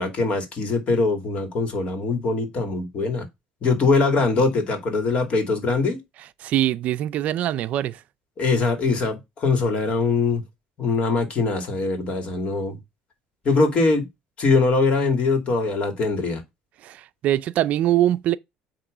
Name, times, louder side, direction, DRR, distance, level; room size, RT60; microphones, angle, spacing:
voice 1, 0.0-3.3 3.6-6.0 8.4-10.4 10.8-12.8 13.4-14.1 14.4-16.4, left 3 dB, 45° left, 2.4 m, -22 dB
voice 2, 6.4-8.0 16.8-18.4, right 13 dB, 60° right, 0.5 m, -23 dB
8.4 x 3.1 x 5.0 m
supercardioid pair, 95°, 3 cm